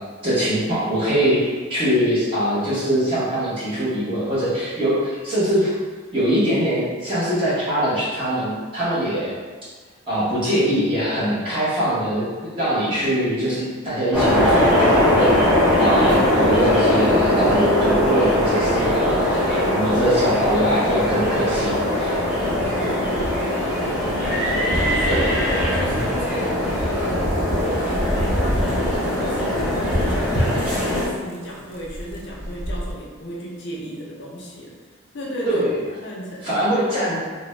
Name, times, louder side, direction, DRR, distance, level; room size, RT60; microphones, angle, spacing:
voice 1, 0.2-5.7 6.1-9.3 10.1-15.3 15.8-22.2 25.1-25.2 35.4-35.7 36.4-37.2, right 1 dB, 25° right, -11 dB, 1.0 m, -22 dB
sound 1, 14.1-31.1, left 1 dB, 5° right, 0.6 m, -20 dB
voice 2, 22.3-23.0 24.5-26.5 26.9-27.2 27.6-34.8 35.1-35.6 36.0-36.4, equal, 60° left, -4 dB, 0.5 m, -33 dB
sound 2, 27.3-32.9, equal, 80° right, 0.5 m, -35 dB
2.5 x 2.2 x 3.1 m, 1.5 s
head